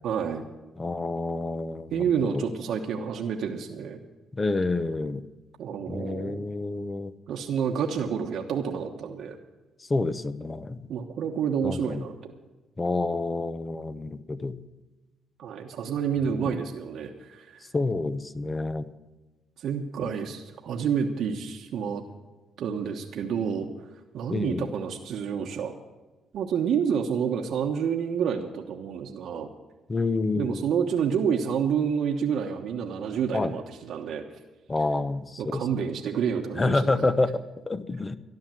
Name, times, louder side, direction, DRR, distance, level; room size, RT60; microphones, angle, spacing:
voice 1, 0.0-0.4 1.9-4.0 5.6-6.4 7.3-9.4 10.9-12.2 15.4-17.6 19.6-22.0 22.6-23.7 24.1-25.7 26.3-29.5 30.3-34.3 35.4-37.1, right 7 dB, 75° right, 1 dB, 1.2 m, -29 dB
voice 2, 0.8-2.1 2.3-2.4 4.3-5.2 5.9-7.1 9.9-10.8 11.6-12.1 12.8-14.6 16.3-16.6 17.7-18.9 20.0-20.1 24.3-24.7 29.9-30.7 33.3-33.5 34.7-35.7 36.5-38.2, left 3 dB, 25° left, 14 dB, 0.8 m, -28 dB
13.5 x 11.0 x 7.7 m, 1.2 s
cardioid pair, 90°, 0 cm